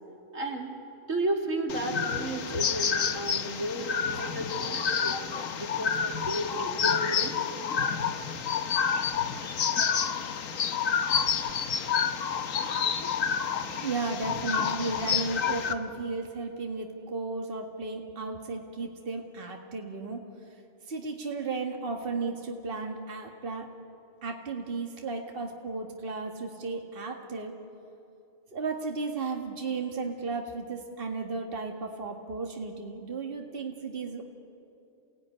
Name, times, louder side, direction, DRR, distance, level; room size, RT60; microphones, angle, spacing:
voice 1, 0.3-0.7 1.1-5.2 5.6-7.4, right 1 dB, 85° right, 2 dB, 2.8 m, -33 dB
sound 1, 1.7-15.7, left 7 dB, 90° left, 1.4 m, -29 dB
voice 2, 13.3-20.2 20.9-23.7 24.2-27.5 28.5-34.2, right 3 dB, 45° right, 2 dB, 1.9 m, -34 dB
28.0 x 17.0 x 9.7 m, 2.7 s
omnidirectional pair, 1.3 m